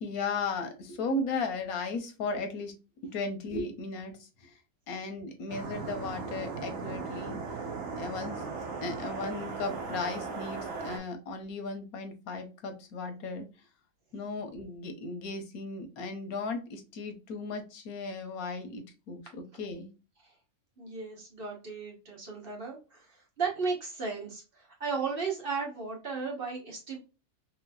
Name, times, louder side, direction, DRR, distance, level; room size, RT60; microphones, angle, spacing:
voice 1, 0.0-2.8 3.1-4.6 4.9-7.4 8.0-8.4 8.8-13.5 14.1-19.9, left 3 dB, 90° left, 1.3 m, -36 dB
sound 1, 5.5-11.0, right 4 dB, 60° right, 1.0 m, -37 dB
voice 2, 20.8-27.0, right 5 dB, 45° right, 1.2 m, -35 dB
3.2 x 3.1 x 2.3 m
omnidirectional pair, 1.5 m